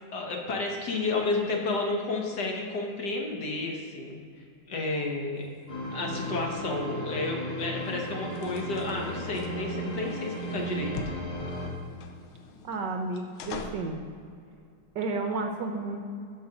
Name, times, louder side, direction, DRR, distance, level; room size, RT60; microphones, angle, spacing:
voice 1, 0.0-4.2 4.7-5.4 5.9-11.0, left 3 dB, 55° left, 0 dB, 1.7 m, -31 dB
sound 1, 5.4-14.0, left 4 dB, 80° left, 1.6 m, -45 dB
sound 2, 5.7-11.7, right 1 dB, 20° left, 1.9 m, -35 dB
voice 2, 12.6-14.0 14.9-16.0, right 3 dB, 65° right, 4 dB, 1.2 m, -32 dB
12.0 x 6.0 x 5.0 m, 2.4 s
omnidirectional pair, 2.3 m